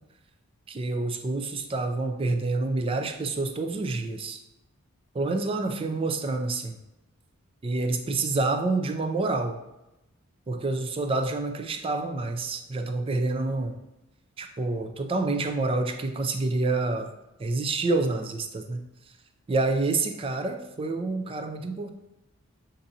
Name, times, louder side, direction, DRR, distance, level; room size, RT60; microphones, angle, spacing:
voice 1, 0.7-4.4 5.1-6.8 7.6-9.6 10.5-13.8 14.4-17.1 17.4-18.8 19.5-21.9, right 3 dB, 25° right, 6 dB, 0.3 m, -28 dB
6.9 x 2.6 x 2.7 m, 0.94 s
head